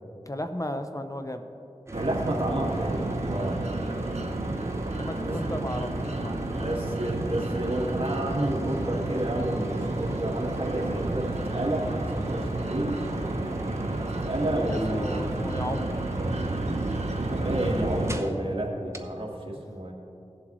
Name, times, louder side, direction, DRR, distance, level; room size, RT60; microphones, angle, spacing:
voice 1, 0.3-1.4 4.9-7.0 13.3-13.6 14.7-16.0, left 1 dB, 30° left, 7 dB, 0.6 m, -35 dB
sound 1, 1.9-18.4 18.9-19.0, right 1 dB, 25° right, 0.8 m, -41 dB
voice 2, 1.9-3.6 5.2-5.4 6.6-13.0 14.1-15.3 17.3-19.9, right 1 dB, 55° right, -2 dB, 1.9 m, -30 dB
sound 2, 1.9-18.2, right 2 dB, 80° right, 0.7 m, -31 dB
17.5 x 7.4 x 3.1 m, 2.7 s
wide cardioid pair, 45°, 11 cm